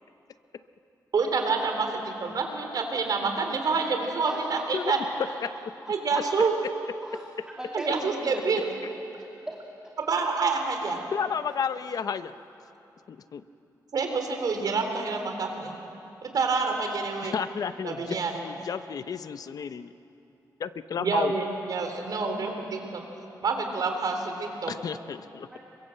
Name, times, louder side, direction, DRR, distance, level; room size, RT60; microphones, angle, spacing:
voice 1, 1.1-5.0 5.9-6.5 7.7-8.7 10.1-11.0 13.9-15.7 16.2-17.3 17.8-18.3 21.0-22.6 22.9-23.0 23.4-24.7, right 4 dB, 60° right, 4 dB, 3.6 m, -27 dB
voice 2, 4.7-5.0 5.4-5.7 6.1-6.2 11.1-12.4 13.1-13.4 17.2-19.9 20.6-21.3 24.7-25.5, left 6 dB, 60° left, 12 dB, 0.8 m, -32 dB
voice 3, 7.0-8.5 9.5-9.6 25.5-25.6, right 1 dB, 10° right, -1 dB, 2.4 m, -37 dB
27.0 x 23.5 x 7.8 m, 2.9 s
wide cardioid pair, 130°, 7 cm